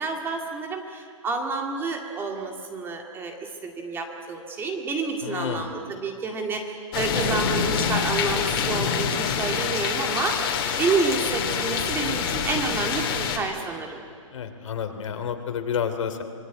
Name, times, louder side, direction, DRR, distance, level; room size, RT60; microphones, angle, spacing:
voice 1, 0.0-3.4 3.6-14.0, right 4 dB, 10° right, 3 dB, 2.1 m, -29 dB
voice 2, 5.2-5.7 14.3-16.2, left 7 dB, 65° left, 7 dB, 3.1 m, -30 dB
sound 1, 6.9-13.4, left 7 dB, 45° left, 3.5 m, -26 dB
26.5 x 20.5 x 9.3 m, 2.3 s
hypercardioid pair, 155°, 17 cm